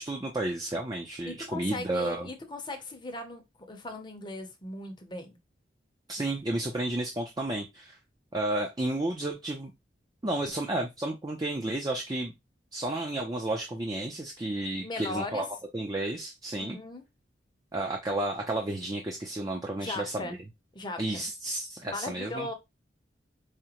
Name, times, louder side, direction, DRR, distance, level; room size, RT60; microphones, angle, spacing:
voice 1, 0.0-2.3 6.1-8.0 8.3-9.7 10.2-12.3 12.7-15.5 15.7-16.8 17.7-20.3 21.0-22.5, right 1 dB, 20° right, 0.5 m, -32 dB
voice 2, 1.2-5.4 14.8-15.5 16.6-17.0 19.8-20.4 20.7-21.2 21.8-22.5, left 2 dB, 25° left, 0.7 m, -38 dB
4.9 x 2.1 x 2.9 m
head